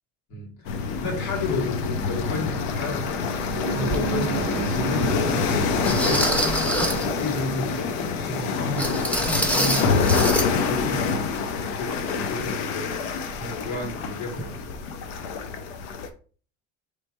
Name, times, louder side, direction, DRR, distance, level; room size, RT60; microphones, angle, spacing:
voice 1, 0.3-3.2 3.5-6.3 6.9-10.2 10.5-11.3 11.7-12.9 13.4-14.8, left 2 dB, 60° left, 1.9 m, -32 dB
sound 1, 0.6-16.1, left 5 dB, 90° left, 0.7 m, -26 dB
sound 2, 3.2-7.8, right 8 dB, 70° right, 0.6 m, -33 dB
sound 3, 3.9-4.0 4.7-4.8 5.8-7.1 8.8-10.5 10.8-10.9 11.4-11.5, right 1 dB, 5° left, 0.6 m, -25 dB
3.3 x 3.2 x 4.3 m
cardioid pair, 145°, 30 cm